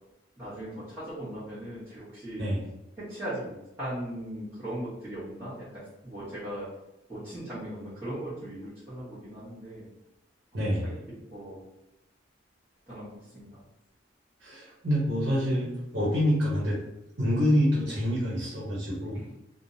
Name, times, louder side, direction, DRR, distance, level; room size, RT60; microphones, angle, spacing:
voice 1, 0.4-2.5 3.0-6.7 7.1-9.9 10.8-11.0 11.3-11.6 12.9-13.6 19.1-19.4, right 1 dB, 15° right, -16 dB, 1.0 m, -38 dB
voice 2, 10.5-10.9 14.4-16.8 17.2-19.2, equal, 75° right, -6 dB, 0.9 m, -26 dB
3.2 x 2.0 x 2.6 m, 0.90 s
head